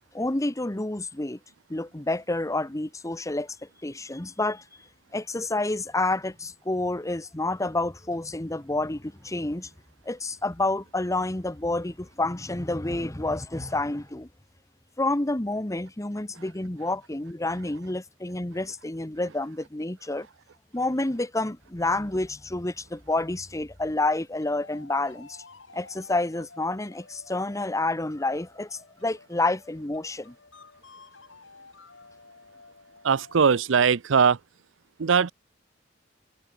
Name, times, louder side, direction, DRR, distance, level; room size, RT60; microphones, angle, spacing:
voice 1, 0.1-1.4 1.7-3.6 3.8-4.6 5.1-9.7 10.1-14.3 15.0-20.3 20.7-25.4 25.7-30.3, left 2 dB, 15° left, 1.1 m, -29 dB
sound 1, 24.4-33.8, left 4 dB, 75° left, 4.0 m, -52 dB
voice 2, 33.0-34.4 35.0-35.3, right 6 dB, 75° right, 0.6 m, -20 dB
head